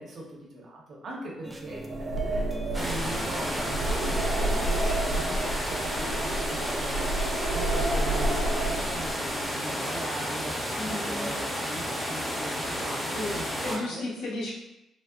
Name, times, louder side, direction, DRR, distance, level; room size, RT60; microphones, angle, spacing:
voice 1, 0.0-14.0, right 1 dB, 55° right, -3 dB, 0.9 m, -40 dB
sound 1, 1.4-8.2, right 1 dB, 15° right, 0.3 m, -42 dB
sound 2, 1.8-9.3, right 1 dB, 85° right, 0.9 m, -30 dB
sound 3, 2.7-13.8, equal, ahead, 0.7 m, -32 dB
voice 2, 10.8-11.3 13.1-13.4 13.6-14.5, left 2 dB, 85° left, -7 dB, 1.2 m, -33 dB
4.0 x 2.0 x 2.4 m, 0.89 s
cardioid pair, 90°, 0 cm